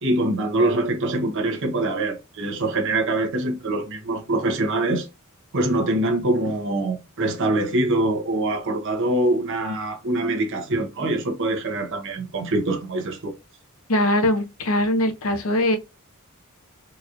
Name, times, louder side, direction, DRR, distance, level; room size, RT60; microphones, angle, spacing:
voice 1, 0.0-5.1 5.5-13.3, right 2 dB, 60° right, 0.8 m, -24 dB
voice 2, 13.9-15.8, left 1 dB, 65° left, 0.8 m, -21 dB
4.0 x 2.8 x 2.4 m
head